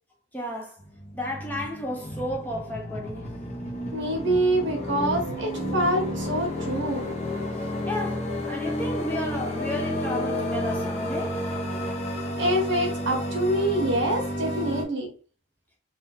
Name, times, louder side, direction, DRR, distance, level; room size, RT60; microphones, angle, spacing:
voice 1, 0.3-0.8 1.1-3.3 7.6-11.4, left 1 dB, 10° left, 0.6 m, -33 dB
sound 1, 0.8-14.8, left 1 dB, 35° left, 0.9 m, -31 dB
voice 2, 3.9-7.2 12.4-15.1, right 1 dB, 60° right, 1.4 m, -25 dB
3.7 x 2.6 x 4.2 m
head